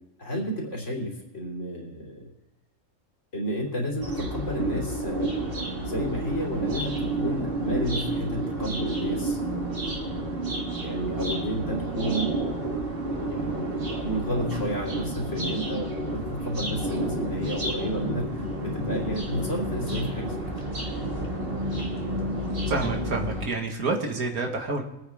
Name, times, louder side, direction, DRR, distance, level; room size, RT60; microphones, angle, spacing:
voice 1, 0.2-2.3 3.3-10.3 10.8-12.3 13.3-13.7 14.0-20.4, equal, 55° left, -2 dB, 3.4 m, -32 dB
sound 1, 4.0-23.5, right 1 dB, 40° right, 2.2 m, -30 dB
voice 2, 22.7-24.8, right 3 dB, 90° right, 3 dB, 2.2 m, -28 dB
22.5 x 9.2 x 3.6 m, 0.97 s
omnidirectional pair, 1.5 m